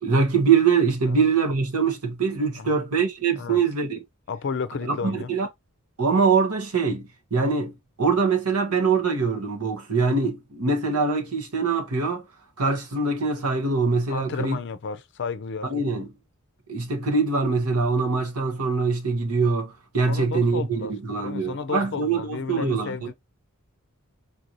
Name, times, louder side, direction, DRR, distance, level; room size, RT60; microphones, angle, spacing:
voice 1, 0.0-4.0 4.8-5.5 6.0-12.2 12.6-14.6 15.7-16.1 16.7-23.1, right 4 dB, 85° right, 1.1 m, -23 dB
voice 2, 4.3-5.3 14.1-15.7 20.1-20.9 21.2-23.1, left 5 dB, 55° left, 0.5 m, -32 dB
4.3 x 2.6 x 2.9 m
head